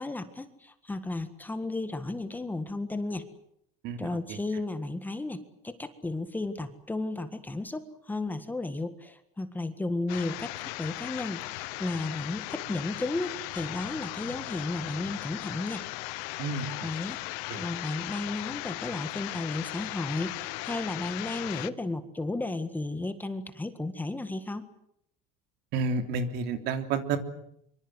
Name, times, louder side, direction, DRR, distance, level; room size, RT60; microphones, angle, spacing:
voice 1, 0.0-3.3 4.0-15.8 16.8-17.2 17.6-24.7, left 2 dB, 10° left, 9 dB, 1.7 m, -34 dB
voice 2, 3.8-4.4 16.4-16.9 17.5-17.6 25.7-27.2, right 4 dB, 60° right, 7 dB, 3.3 m, -31 dB
sound 1, 10.1-21.7, left 21 dB, 80° left, 1.1 m, -37 dB
25.0 x 24.5 x 8.0 m, 0.74 s
cardioid pair, 140°, 20 cm